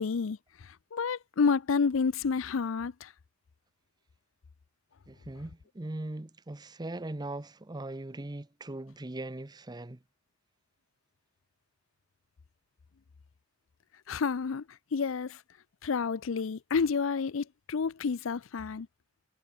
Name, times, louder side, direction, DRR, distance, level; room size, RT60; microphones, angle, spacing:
voice 1, 0.0-3.1 14.1-15.4 15.8-18.9, left 5 dB, 75° left, 0.5 m, -30 dB
voice 2, 5.1-10.0, right 2 dB, 20° right, 0.7 m, -40 dB
head